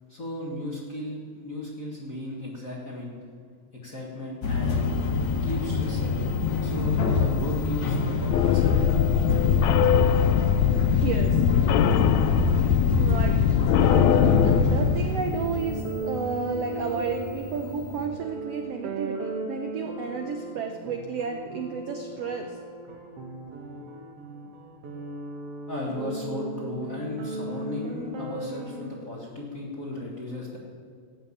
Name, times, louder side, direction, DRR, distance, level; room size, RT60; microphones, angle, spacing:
voice 1, 0.1-3.2 3.7-4.8 5.4-6.3 6.6-8.8 25.7-30.6, left 1 dB, 35° left, -3 dB, 1.5 m, -36 dB
sound 1, 4.4-18.1, left 4 dB, 60° left, 2.5 m, -26 dB
sound 2, 8.3-14.6, left 9 dB, 80° left, 1.6 m, -21 dB
voice 2, 10.9-11.7 13.0-13.4 13.8-22.6, right 6 dB, 75° right, 4 dB, 1.4 m, -32 dB
sound 3, 13.8-28.9, right 1 dB, 50° right, 2.3 m, -36 dB
17.5 x 7.2 x 8.5 m, 2.2 s
omnidirectional pair, 3.8 m